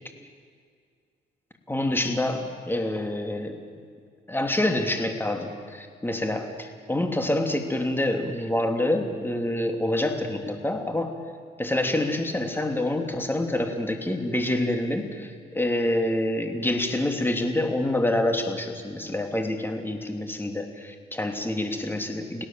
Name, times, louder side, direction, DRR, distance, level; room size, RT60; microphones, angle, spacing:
voice 1, 1.7-3.6 4.3-11.1 11.6-22.4, left 1 dB, 10° left, 4 dB, 3.0 m, -27 dB
30.0 x 17.5 x 7.6 m, 2.1 s
cardioid pair, 90°, 20 cm